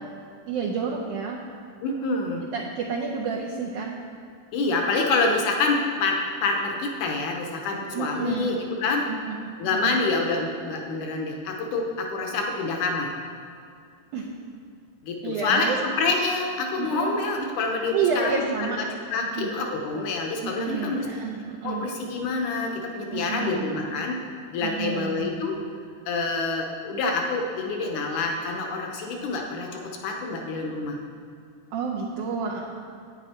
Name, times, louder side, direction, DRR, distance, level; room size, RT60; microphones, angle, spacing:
voice 1, 0.5-1.4 2.5-4.0 7.9-8.6 9.1-9.4 9.7-10.0 14.1-14.3 15.2-15.8 16.8-17.1 17.9-18.8 19.3-19.5 20.4-21.8 23.1-23.8 24.6-25.2 31.7-32.6, right 5 dB, 85° right, -2 dB, 1.8 m, -29 dB
voice 2, 1.8-2.5 4.5-9.1 9.6-13.1 15.0-18.9 19.1-21.1 21.6-24.2 24.5-25.6 26.1-31.0, left 3 dB, 70° left, 1 dB, 1.9 m, -27 dB
10.0 x 9.1 x 4.3 m, 2.3 s
omnidirectional pair, 4.4 m